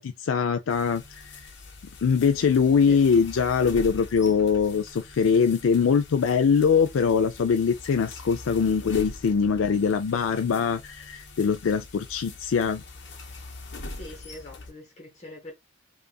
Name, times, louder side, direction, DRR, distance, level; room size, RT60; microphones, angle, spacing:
voice 1, 0.0-1.5 2.0-12.8, left 6 dB, 85° left, 0.4 m, -23 dB
sound 1, 0.7-14.7, left 2 dB, 65° left, 1.0 m, -43 dB
voice 2, 13.9-15.5, left 1 dB, 35° left, 1.2 m, -43 dB
5.2 x 2.5 x 2.2 m
head